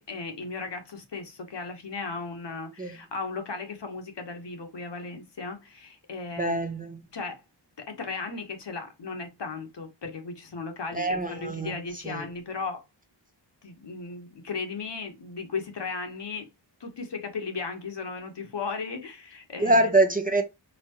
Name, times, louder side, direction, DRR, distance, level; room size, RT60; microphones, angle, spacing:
voice 1, 0.0-6.6 7.1-7.4 7.8-12.8 13.6-16.5 16.8-19.9, left 4 dB, 70° left, 1.2 m, -36 dB
voice 2, 6.4-7.0 10.9-11.8 12.0-12.2 19.6-20.4, right 2 dB, 20° right, 0.9 m, -24 dB
4.3 x 3.5 x 2.9 m
wide cardioid pair, 80°, 44 cm